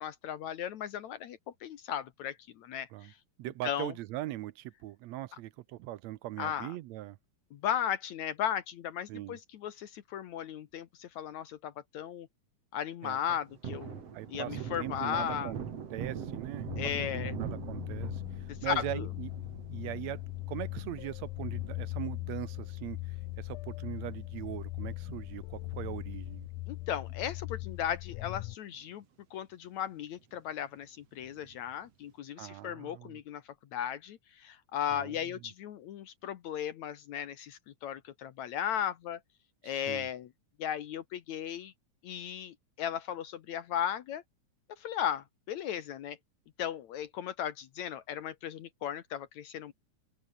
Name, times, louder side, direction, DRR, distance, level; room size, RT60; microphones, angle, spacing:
voice 1, 0.0-3.2 3.6-3.9 6.4-6.7 7.5-12.3 12.7-14.0 14.3-15.5 16.8-17.3 18.5-19.1 26.7-29.0 29.3-33.4 33.7-39.2 39.6-40.3 40.6-41.7 42.0-44.2 44.8-46.2 46.6-49.7, left 9 dB, 70° left, 2.4 m, -36 dB
voice 2, 3.4-7.2 9.1-9.4 13.0-13.2 14.1-15.6 15.9-16.7 17.1-19.3 19.7-20.2 20.5-26.5 32.4-33.2 34.9-35.4 39.6-40.1, right 15 dB, 75° right, 1.8 m, -40 dB
Thunder, 13.2-24.0 24.3-24.4 24.8-26.3 26.6-26.7 27.1-27.9 28.3-28.4 28.7-28.8 31.2-31.7, right 7 dB, 55° right, 3.2 m, -43 dB
sound 1, 16.7-28.6, left 20 dB, 85° left, 2.0 m, -40 dB
open air
omnidirectional pair, 3.5 m